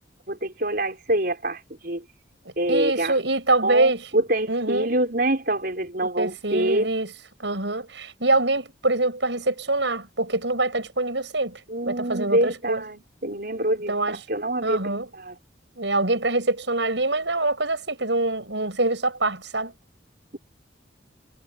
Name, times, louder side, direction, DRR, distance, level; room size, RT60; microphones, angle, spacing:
voice 1, 0.3-2.0 2.6-3.2 3.6-6.9 11.7-15.4, right 1 dB, 50° right, 4.9 m, -26 dB
voice 2, 2.7-4.0 4.5-4.9 6.2-7.1 7.4-11.6 11.9-12.8 13.9-14.2 14.6-15.1 15.8-19.7, right 2 dB, 70° right, 6.7 m, -24 dB
head